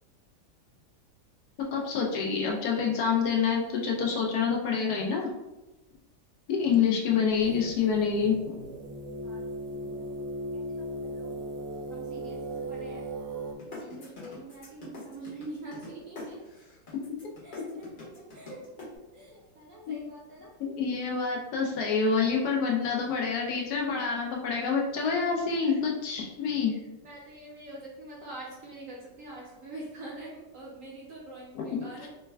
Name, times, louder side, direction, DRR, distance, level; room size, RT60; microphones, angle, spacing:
voice 1, 1.7-5.3 6.5-8.5 19.9-20.0 20.6-26.7 31.5-32.1, left 6 dB, 75° left, -1 dB, 1.1 m, -27 dB
sound 1, 7.4-13.5, right 1 dB, 80° right, 1.2 m, -37 dB
voice 2, 9.7-10.1 10.5-11.4 11.9-13.1 13.8-16.4 17.4-18.9 19.1-20.5 25.5-25.8 26.7-26.8 27.0-32.1, right 2 dB, 60° right, -4 dB, 0.9 m, -45 dB
sound 2, 13.6-18.8, left 3 dB, 40° left, 0.7 m, -44 dB
3.3 x 2.1 x 3.2 m, 1.0 s
omnidirectional pair, 1.8 m